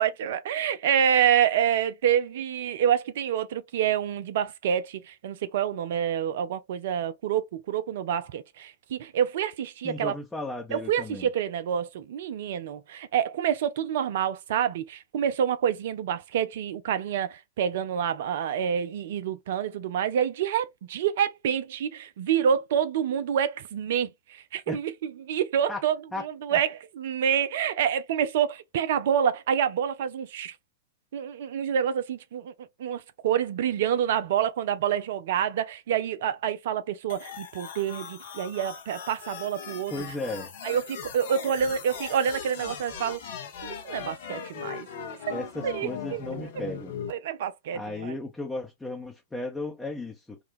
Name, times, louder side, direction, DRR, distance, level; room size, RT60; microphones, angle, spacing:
voice 1, 0.0-10.1 10.7-30.5 31.1-39.9 40.6-43.2 43.6-44.9 45.3-45.4 45.6-46.2 47.1-48.1, right 9 dB, 60° right, 0.5 m, -27 dB
voice 2, 9.8-11.3 24.7-24.8 25.7-25.8 26.1-26.2 26.5-26.6 39.9-40.5 45.3-47.0 47.7-50.4, left 2 dB, 5° left, 0.8 m, -35 dB
sound 1, 37.1-47.1, left 7 dB, 60° left, 0.9 m, -39 dB
3.8 x 2.3 x 2.5 m
figure-of-eight pair, 100°, 0 cm